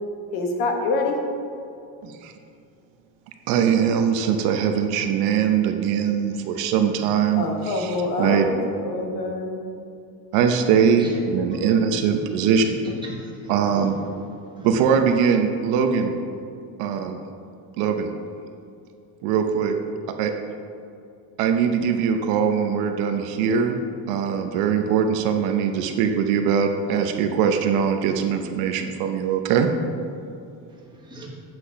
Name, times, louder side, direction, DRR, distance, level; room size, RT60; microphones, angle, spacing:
voice 1, 0.3-1.2 7.4-9.6, left 2 dB, 50° left, 2 dB, 1.3 m, -26 dB
voice 2, 3.5-7.5 8.2-8.4 10.3-12.7 13.5-14.0 14.6-16.1 16.8-17.2 17.8-18.1 19.2-19.7 20.2-20.3 21.4-23.8 24.1-29.7, right 7 dB, 60° right, 5 dB, 0.8 m, -21 dB
voice 3, 13.0-14.0 14.6-14.8 30.7-31.3, right 1 dB, 10° right, -3 dB, 1.3 m, -38 dB
8.4 x 6.1 x 5.8 m, 2.5 s
cardioid pair, 170°, 42 cm